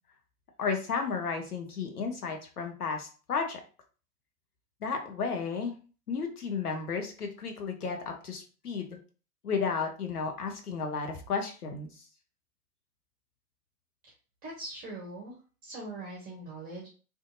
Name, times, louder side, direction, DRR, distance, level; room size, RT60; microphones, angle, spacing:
voice 1, 0.6-3.6 4.8-5.7 6.1-9.0 9.4-11.9, left 5 dB, 75° left, 3 dB, 0.8 m, -33 dB
voice 2, 14.4-15.4 15.6-16.9, right 2 dB, 20° right, -2 dB, 0.6 m, -41 dB
2.5 x 2.5 x 2.5 m, 0.38 s
figure-of-eight pair, 100°, 45 cm